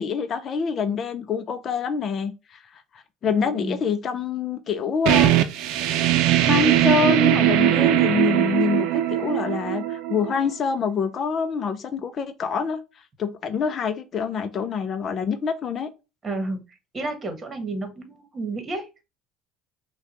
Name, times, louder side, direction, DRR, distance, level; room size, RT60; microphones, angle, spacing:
voice 1, 0.0-2.8 3.2-5.3 6.2-12.8 13.2-15.9, left 6 dB, 45° left, 0.6 m, -26 dB
voice 2, 3.3-3.8 16.2-16.6 16.9-19.0, right 2 dB, 30° right, 1.5 m, -31 dB
sound 1, 5.1-10.5, right 13 dB, 70° right, 0.6 m, -20 dB
5.6 x 2.3 x 3.0 m
supercardioid pair, 85°, 0 cm